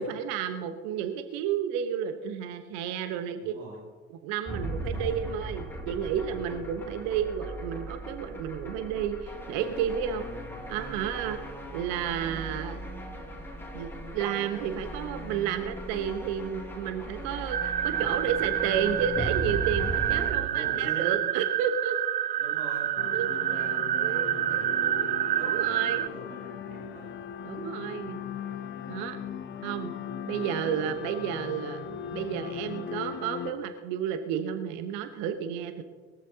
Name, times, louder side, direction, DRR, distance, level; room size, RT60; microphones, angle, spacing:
voice 1, 0.0-3.5 4.1-10.2 10.7-11.4 11.7-12.8 13.7-22.0 23.1-23.3 24.0-24.3 25.4-26.0 27.4-28.2 28.9-29.2 29.6-29.9 30.3-31.8 32.1-35.8, right 8 dB, 55° right, 8 dB, 1.1 m, -31 dB
voice 2, 3.4-3.8 4.9-5.2 7.0-7.1 17.8-18.3 20.2-21.2 22.4-22.9 23.3-27.1 28.8-29.2, right 2 dB, 80° right, -5 dB, 4.6 m, -43 dB
sound 1, 4.5-20.3, right 1 dB, 5° left, 2.5 m, -38 dB
sound 2, 17.5-26.1, right 12 dB, 25° right, 0.3 m, -28 dB
sound 3, 23.0-33.5, left 8 dB, 35° left, 1.1 m, -38 dB
21.0 x 14.0 x 2.8 m, 1.5 s
figure-of-eight pair, 65°, 33 cm